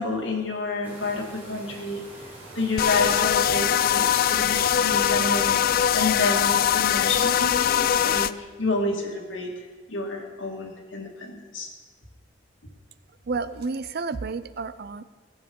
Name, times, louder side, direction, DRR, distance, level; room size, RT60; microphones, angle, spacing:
voice 1, 0.0-2.0 2.6-5.6 5.9-9.5 9.9-11.7, left 3 dB, 85° left, 1 dB, 2.1 m, -29 dB
sound 1, 0.8-6.2, right 2 dB, 10° right, 3.7 m, -44 dB
sound 2, 2.8-8.3, left 10 dB, 50° left, 0.3 m, -22 dB
voice 2, 13.3-15.0, right 4 dB, 55° right, 14 dB, 0.5 m, -30 dB
15.5 x 7.3 x 5.4 m, 1.4 s
head